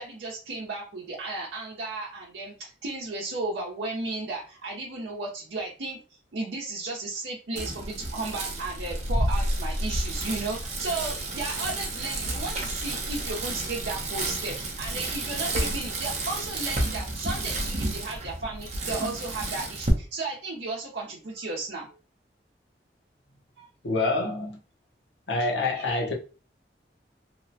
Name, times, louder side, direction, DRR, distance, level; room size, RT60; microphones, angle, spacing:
voice 1, 0.0-21.9 23.6-23.7 25.7-25.8, right 2 dB, 85° right, 0.6 m, -34 dB
Bicycle, 7.6-19.9, right 2 dB, 40° right, 0.6 m, -31 dB
voice 2, 23.8-24.6 25.3-26.1, left 2 dB, 85° left, 0.7 m, -26 dB
2.8 x 2.1 x 2.6 m
head